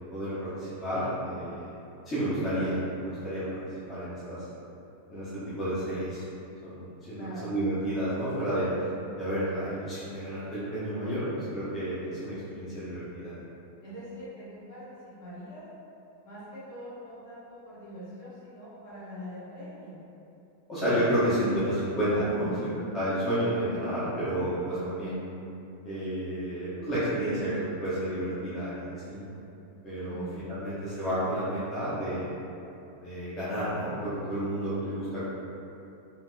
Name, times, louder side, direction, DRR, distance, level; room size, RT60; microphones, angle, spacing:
voice 1, 0.1-1.7 2.1-4.4 5.1-6.2 6.6-8.9 9.2-13.3 20.7-25.3 25.8-29.2 29.8-32.3 32.9-35.2, right 1 dB, 25° left, -12 dB, 0.8 m, -31 dB
voice 2, 7.1-7.5 13.8-15.6 16.2-20.0 22.4-22.9 30.0-30.5, equal, 60° left, -12 dB, 1.4 m, -43 dB
2.8 x 2.7 x 2.2 m, 2.8 s
figure-of-eight pair, 90°, 0 cm